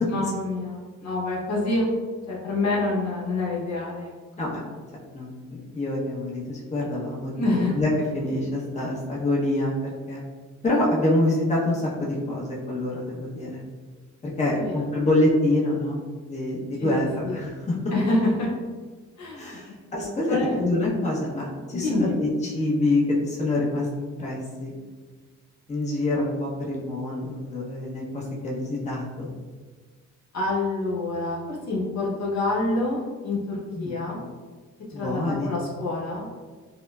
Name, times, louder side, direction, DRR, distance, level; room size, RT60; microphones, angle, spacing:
voice 1, 0.1-1.9 2.3-4.1 7.3-7.7 14.6-14.7 16.8-16.9 17.3-17.4 17.9-18.5 19.2-19.6 20.3-20.6 21.7-22.2 30.3-34.2 34.9-36.3, left 2 dB, 65° left, -3 dB, 1.0 m, -27 dB
voice 2, 5.1-7.3 7.7-10.2 10.6-13.6 14.2-16.0 16.3-17.8 19.4-24.7 25.7-29.3 33.7-34.0 34.9-35.5, left 1 dB, 25° left, -5 dB, 0.9 m, -26 dB
5.0 x 2.1 x 2.4 m, 1.4 s
cardioid pair, 90°, 30 cm